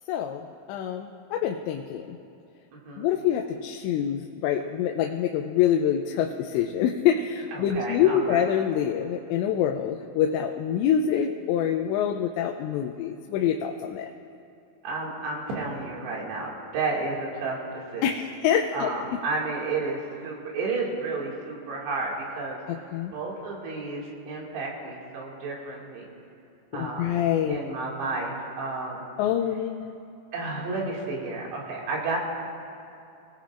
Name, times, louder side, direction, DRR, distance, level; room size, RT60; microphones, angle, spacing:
voice 1, 0.1-0.4 0.7-2.2 3.0-14.1 18.0-18.9 22.7-23.1 26.7-27.6 29.2-29.9, left 9 dB, 80° left, 3 dB, 2.8 m, -26 dB
voice 2, 2.7-3.1 7.5-8.6 14.8-18.1 18.7-26.1 26.7-27.2 27.4-29.0 30.3-32.2, right 3 dB, 70° right, -3 dB, 4.3 m, -32 dB
25.5 x 17.5 x 2.5 m, 2.7 s
omnidirectional pair, 5.2 m